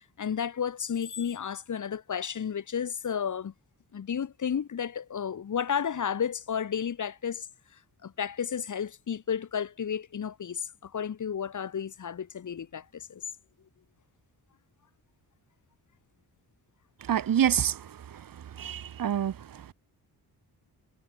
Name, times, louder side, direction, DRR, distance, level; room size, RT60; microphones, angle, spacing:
voice 1, 0.2-3.5 3.9-7.5 8.0-13.2, left 7 dB, 50° left, 2.8 m, -32 dB
voice 2, 17.1-17.8 18.6-19.3, right 9 dB, 65° right, 2.0 m, -26 dB
wide cardioid pair, 125°, 37 cm